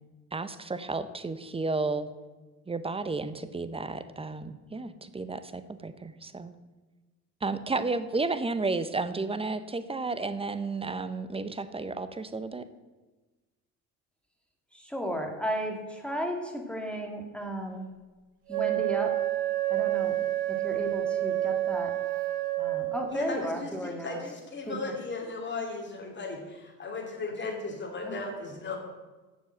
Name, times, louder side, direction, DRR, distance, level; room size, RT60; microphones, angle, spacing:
voice 1, 0.3-2.1 2.7-6.5 7.4-12.6, right 3 dB, 15° right, 12 dB, 0.7 m, -32 dB
voice 2, 14.7-17.9 18.5-19.2 19.7-20.2 20.5-22.3 22.6-24.2 24.6-24.8 28.0-28.3, equal, 5° left, 1 dB, 1.8 m, -34 dB
Wind instrument woodwind instrument, 18.5-23.1, right 14 dB, 85° right, 1.4 m, -29 dB
voice 3, 23.1-23.7 24.0-28.8, left 3 dB, 30° left, 1 dB, 2.8 m, -36 dB
7.1 x 6.9 x 7.5 m, 1.2 s
supercardioid pair, 75°, 35 cm